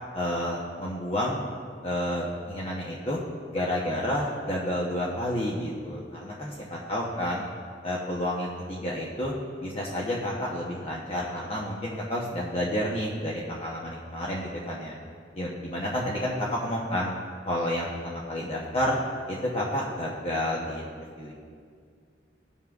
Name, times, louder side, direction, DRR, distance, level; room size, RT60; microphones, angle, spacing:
voice 1, 0.1-1.4 1.8-3.2 3.5-7.4 7.8-9.3 9.6-14.9 15.3-17.1 17.4-19.0 19.3-20.9 21.2-21.3, left 1 dB, 35° left, -4 dB, 0.8 m, -30 dB
16.0 x 5.5 x 2.3 m, 2.1 s
head